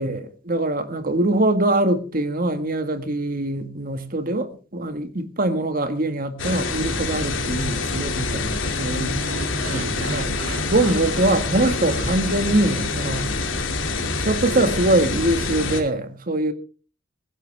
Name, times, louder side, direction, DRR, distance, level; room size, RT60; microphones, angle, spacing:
voice 1, 0.0-9.2 9.7-13.3 14.1-16.5, right 1 dB, 45° right, 1.9 m, -23 dB
sound 1, 6.4-15.8, left 3 dB, 80° left, 2.7 m, -26 dB
sound 2, 9.1-14.3, right 3 dB, 70° right, 2.0 m, -37 dB
16.5 x 15.5 x 3.5 m
head